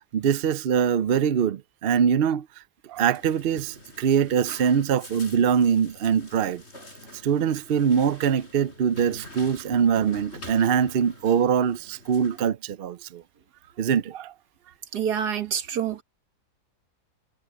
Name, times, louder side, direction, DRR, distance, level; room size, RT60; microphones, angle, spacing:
voice 1, 0.1-2.5 2.9-6.6 7.2-13.2 13.8-14.3, right 7 dB, 60° right, 0.6 m, -23 dB
sound 1, 3.0-12.5, left 1 dB, 40° left, 6.5 m, -46 dB
voice 2, 14.9-16.0, right 8 dB, 75° right, 1.9 m, -27 dB
omnidirectional pair, 1.7 m